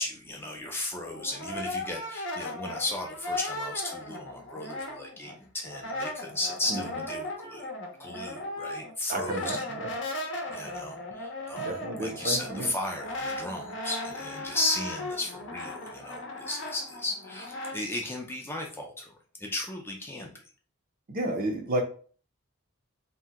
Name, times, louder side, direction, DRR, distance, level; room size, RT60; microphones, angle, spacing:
voice 1, 0.0-7.7 8.0-9.6 10.5-11.7 12.0-19.1 19.4-20.3, left 2 dB, 10° left, 1 dB, 0.4 m, -35 dB
Brass instrument, 0.9-5.4 5.6-17.8, left 1 dB, 60° left, 0.7 m, -37 dB
voice 2, 6.7-7.0 9.1-9.9 11.6-12.7 21.1-21.8, right 1 dB, 45° right, 3 dB, 0.5 m, -32 dB
2.8 x 2.1 x 3.4 m, 0.42 s
head